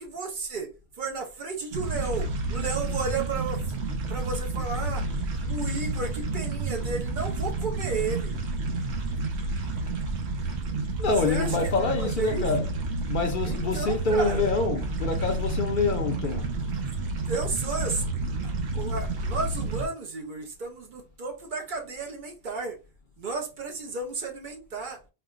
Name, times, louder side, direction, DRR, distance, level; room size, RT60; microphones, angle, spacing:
voice 1, 0.0-3.8 4.1-5.1 5.4-8.4 11.2-12.5 13.4-14.5 17.3-18.1 18.4-22.8 23.2-25.0, right 4 dB, 55° right, 0.7 m, -33 dB
sound 1, 1.7-19.9, right 2 dB, 90° right, 1.0 m, -30 dB
voice 2, 11.0-12.7 13.1-16.5, left 3 dB, 60° left, 0.7 m, -26 dB
4.3 x 2.0 x 2.3 m
omnidirectional pair, 1.1 m